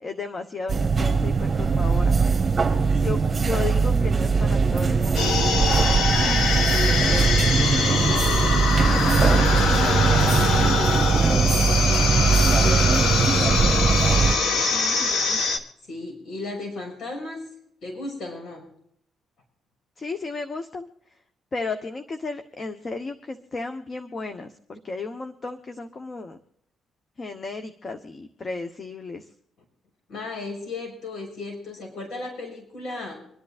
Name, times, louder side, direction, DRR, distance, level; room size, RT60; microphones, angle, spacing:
voice 1, 0.0-2.2 3.0-5.3 14.7-15.4 20.0-21.2 21.5-26.4 27.2-29.3, left 3 dB, 40° left, 7 dB, 1.1 m, -34 dB
sound 1, 0.7-14.3, right 5 dB, 30° right, 1.4 m, -21 dB
voice 2, 2.6-3.2 6.0-8.6 9.2-14.7 15.9-17.4 17.8-18.7 30.1-33.1, left 2 dB, 65° left, 1 dB, 6.4 m, -35 dB
sound 2, 5.2-15.6, left 4 dB, 85° left, 1.7 m, -23 dB
26.5 x 10.5 x 2.5 m, 0.71 s
cardioid pair, 90°, 0 cm